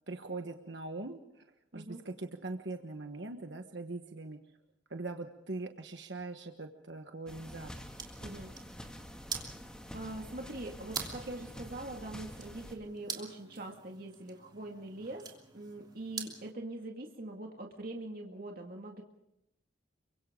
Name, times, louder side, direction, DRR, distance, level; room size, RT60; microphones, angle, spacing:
voice 1, 0.1-1.4 1.7-4.4 4.9-7.9, right 2 dB, 70° right, 5 dB, 1.3 m, -41 dB
voice 2, 1.7-2.0 8.2-8.5 9.9-15.3 15.5-19.0, right 2 dB, 55° right, 1 dB, 2.1 m, -43 dB
sound 1, 7.3-12.8, equal, 5° left, 2.2 m, -47 dB
Flipping knife, 7.7-16.5, right 5 dB, 25° right, 3.0 m, -46 dB
29.0 x 24.5 x 3.8 m, 0.83 s
head